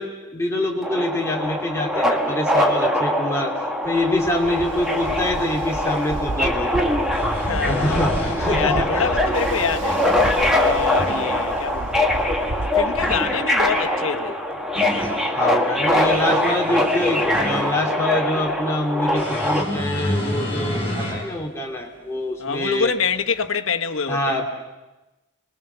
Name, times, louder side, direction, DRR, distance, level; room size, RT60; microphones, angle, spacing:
voice 1, 0.0-6.9 7.7-8.9 15.4-22.9 24.1-24.5, left 1 dB, 15° left, 2.7 m, -25 dB
Subway metro underground, 0.8-19.6, left 1 dB, 5° right, 1.8 m, -22 dB
Ocean, 4.0-13.9, right 2 dB, 65° right, 1.2 m, -32 dB
sound 1, 5.9-6.0 6.9-8.6 9.6-10.3 10.8-11.3 12.9-13.3 14.3-15.2 15.8-17.9 19.1-21.3 21.8-21.9 23.4-23.5, left 1 dB, 30° left, 6.6 m, -30 dB
voice 2, 7.4-10.0 10.5-12.1 12.7-14.4 22.4-24.4, left 5 dB, 85° left, 1.1 m, -26 dB
29.5 x 21.5 x 6.8 m
head